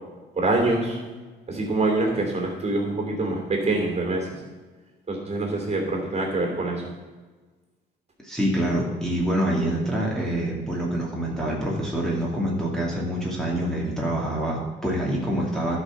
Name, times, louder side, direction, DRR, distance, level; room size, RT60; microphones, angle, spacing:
voice 1, 0.3-1.0 1.5-4.4 5.1-6.9, right 2 dB, 35° right, 1 dB, 3.1 m, -25 dB
voice 2, 8.2-15.8, right 1 dB, 5° left, -4 dB, 2.5 m, -26 dB
11.0 x 5.6 x 6.5 m, 1.3 s
cardioid pair, 90°, 20 cm